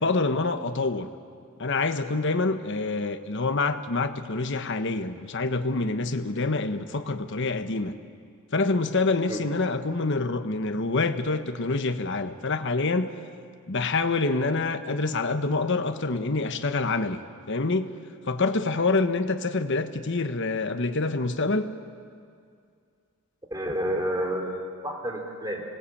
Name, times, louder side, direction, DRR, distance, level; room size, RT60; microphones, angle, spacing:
voice 1, 0.0-1.1 1.6-7.9 8.5-13.1 13.7-17.2 17.5-17.9 18.3-21.7, left 3 dB, 55° left, 9 dB, 1.2 m, -26 dB
voice 2, 23.5-25.6, equal, 15° right, 1 dB, 3.4 m, -30 dB
26.0 x 19.0 x 8.6 m, 2.3 s
head